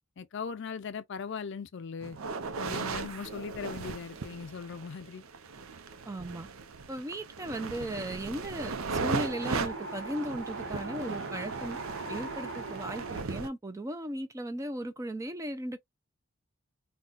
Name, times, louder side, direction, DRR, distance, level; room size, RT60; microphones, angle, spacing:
voice 1, 0.2-2.2 2.6-5.2, left 6 dB, 60° left, 0.4 m, -39 dB
sound 1, 2.0-13.5, right 4 dB, 90° right, 0.6 m, -38 dB
voice 2, 6.1-6.5 6.9-11.8 12.1-15.8, right 1 dB, 15° right, 0.4 m, -37 dB
Wind, 8.7-13.2, right 3 dB, 65° right, 1.0 m, -39 dB
3.9 x 2.2 x 2.4 m
head